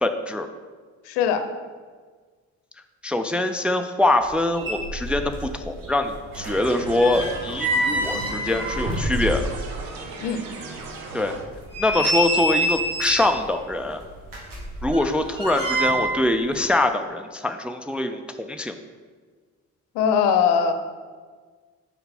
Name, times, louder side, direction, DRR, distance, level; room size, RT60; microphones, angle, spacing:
voice 1, 0.0-0.5 3.0-9.5 11.1-11.4 11.8-14.0 14.8-18.8, left 1 dB, 5° right, 7 dB, 0.4 m, -23 dB
voice 2, 1.0-1.5 10.2-10.4 19.9-20.7, left 7 dB, 70° left, 8 dB, 0.7 m, -20 dB
sound 1, 4.3-4.4 4.6-5.6 5.8-9.8 10.1-10.2 10.8-10.9 11.4-13.4 14.2-16.2 16.5-16.7, right 1 dB, 50° right, 2.1 m, -26 dB
sound 2, 6.3-11.4, right 3 dB, 85° right, 0.7 m, -37 dB
6.6 x 4.7 x 4.3 m, 1.5 s
figure-of-eight pair, 40°, 42 cm